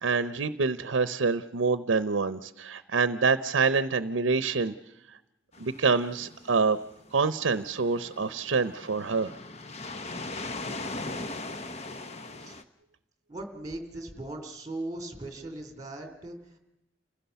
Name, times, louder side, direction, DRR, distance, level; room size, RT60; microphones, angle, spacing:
voice 1, 0.0-4.7 5.6-6.8 7.1-9.3, right 4 dB, 80° right, 14 dB, 0.7 m, -26 dB
sound 1, 5.5-12.6, left 2 dB, 35° left, 0.9 m, -40 dB
voice 2, 13.3-16.6, right 2 dB, 20° right, 6 dB, 2.6 m, -39 dB
29.0 x 15.5 x 6.9 m, 0.90 s
head